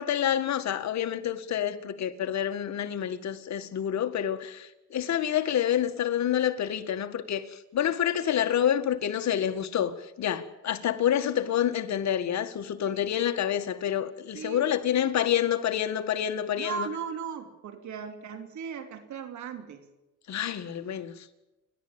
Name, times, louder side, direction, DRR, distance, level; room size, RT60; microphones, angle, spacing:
voice 1, 0.0-16.9 20.3-21.2, left 10 dB, 65° left, 1.9 m, -28 dB
voice 2, 14.3-14.7 16.5-19.8, right 7 dB, 70° right, 3.2 m, -37 dB
29.0 x 12.5 x 8.9 m
cardioid pair, 90°, 30 cm